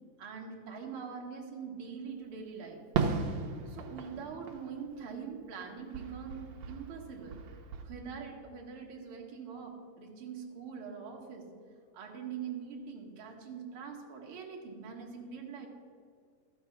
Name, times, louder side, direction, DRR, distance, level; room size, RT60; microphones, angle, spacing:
voice 1, 0.2-2.8 3.7-7.4 7.8-11.5 11.9-15.7, right 6 dB, 55° right, 0 dB, 2.1 m, -43 dB
Fireworks, 2.9-5.6 5.9-7.8, right 5 dB, 75° right, 2.0 m, -36 dB
13.5 x 5.9 x 5.9 m, 2.1 s
omnidirectional pair, 3.3 m